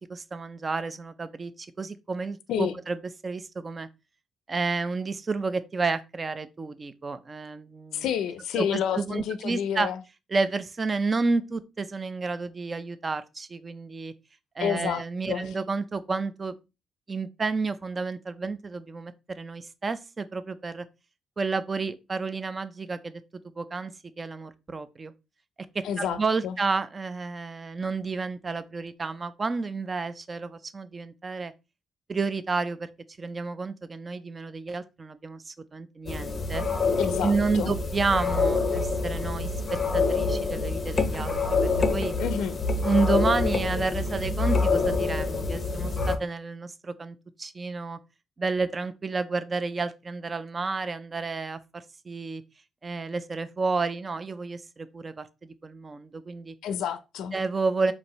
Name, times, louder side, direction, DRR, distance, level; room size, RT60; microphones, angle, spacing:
voice 1, 0.1-3.0 3.2-3.9 4.5-8.1 8.6-9.9 10.3-14.1 14.6-16.5 17.1-20.9 21.4-23.2 23.6-23.9 24.2-25.1 25.7-31.5 32.1-32.9 33.2-36.6 37.2-39.5 39.9-41.6 41.9-42.1 42.8-48.0 48.4-52.4 52.8-55.3 55.6-56.5 57.3-57.9, right 4 dB, 20° right, 0.4 m, -30 dB
voice 2, 7.9-10.0 14.6-15.0 15.3-15.5 25.8-26.2 26.4-26.5 37.0-37.7 42.2-42.6 56.6-57.4, left 9 dB, 80° left, 0.4 m, -29 dB
sound 1, 36.1-46.2, left 4 dB, 25° left, 0.6 m, -26 dB
4.7 x 2.6 x 4.1 m
cardioid pair, 165°, 0 cm